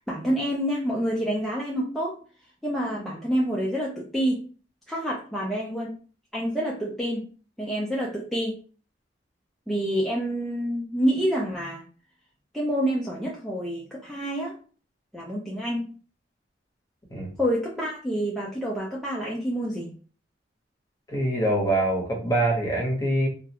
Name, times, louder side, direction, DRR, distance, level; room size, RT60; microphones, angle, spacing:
voice 1, 0.0-2.2 2.6-4.4 4.9-5.9 6.3-7.3 7.6-8.6 9.7-11.8 12.5-14.5 15.1-15.9 17.4-19.9, equal, ahead, -5 dB, 0.4 m, -27 dB
voice 2, 21.1-23.3, right 1 dB, 20° left, -2 dB, 0.8 m, -24 dB
2.3 x 2.1 x 2.8 m, 0.39 s
head